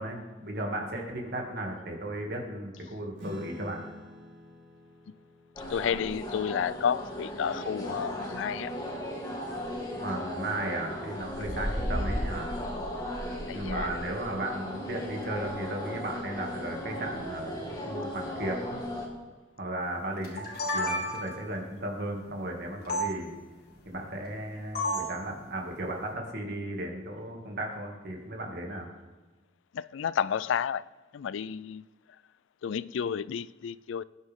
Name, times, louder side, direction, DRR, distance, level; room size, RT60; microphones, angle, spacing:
voice 1, 0.0-3.8 10.0-12.5 13.5-18.9 19.6-20.5 20.7-23.3 23.8-28.9, right 1 dB, 55° right, 2.4 m, -35 dB
Acoustic guitar / Strum, 3.2-8.0, left 1 dB, 80° right, 4.3 m, -49 dB
sound 1, 5.6-19.1, equal, 20° left, 2.1 m, -36 dB
voice 2, 5.7-8.7 11.4-11.7 13.5-13.9 29.7-30.9 31.1-31.8 32.6-34.0, left 7 dB, 85° left, 0.4 m, -31 dB
sound 2, 20.2-21.5 22.9-23.1 24.7-25.2, left 1 dB, 55° left, 2.6 m, -31 dB
20.0 x 9.7 x 3.7 m
head